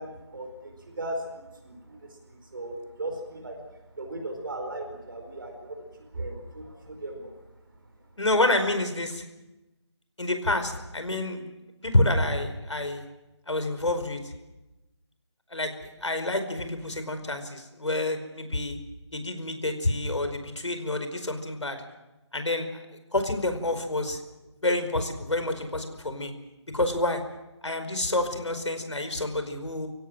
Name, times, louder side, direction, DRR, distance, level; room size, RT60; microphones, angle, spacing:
voice 1, 0.0-3.6 4.0-5.8 6.1-7.4, right 1 dB, 45° right, 3 dB, 4.7 m, -37 dB
voice 2, 8.2-9.2 10.2-11.5 11.8-13.0 13.5-14.3 15.5-18.8 19.1-21.8 22.3-22.7 23.1-24.2 24.6-26.3 26.7-27.2 27.6-29.9, left 2 dB, 85° left, 8 dB, 4.9 m, -28 dB
25.0 x 16.5 x 7.7 m, 1.0 s
figure-of-eight pair, 170°, 15 cm